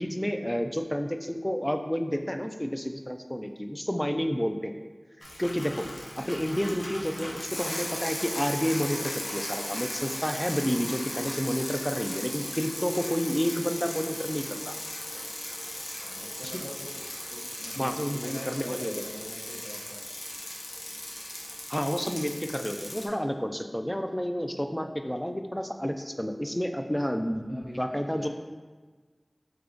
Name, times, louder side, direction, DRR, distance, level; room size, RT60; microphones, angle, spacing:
voice 1, 0.0-4.7 5.2-5.9 6.2-14.8 16.4-16.6 17.8-19.1 21.7-28.3, equal, 10° left, 6 dB, 0.3 m, -30 dB
Bicycle, 5.2-23.1, left 1 dB, 75° left, 0.7 m, -37 dB
voice 2, 16.0-16.9 17.3-20.0 27.5-28.3, equal, 35° left, -5 dB, 0.7 m, -44 dB
3.6 x 3.3 x 3.7 m, 1.4 s
wide cardioid pair, 50°, 0 cm